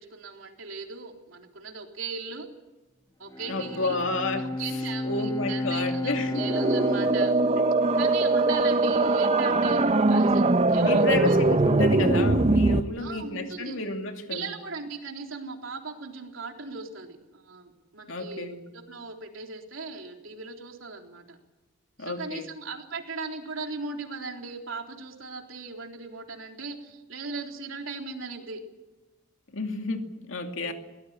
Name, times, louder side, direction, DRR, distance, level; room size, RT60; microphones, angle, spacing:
voice 1, 0.0-2.5 3.2-4.0 4.6-7.3 7.9-11.4 13.0-13.8 14.3-21.4 22.0-28.6, right 4 dB, 75° right, 3 dB, 3.6 m, -38 dB
Bowed string instrument, 3.3-8.8, left 2 dB, 20° left, 1.5 m, -33 dB
voice 2, 3.5-4.5 5.0-6.5 7.6-7.7 10.8-14.5 18.1-18.6 22.0-22.5 29.5-30.7, left 2 dB, 70° left, 5 dB, 2.6 m, -30 dB
sound 1, 6.3-12.8, right 2 dB, 30° right, 0.9 m, -22 dB
22.0 x 18.5 x 8.5 m, 1.1 s
head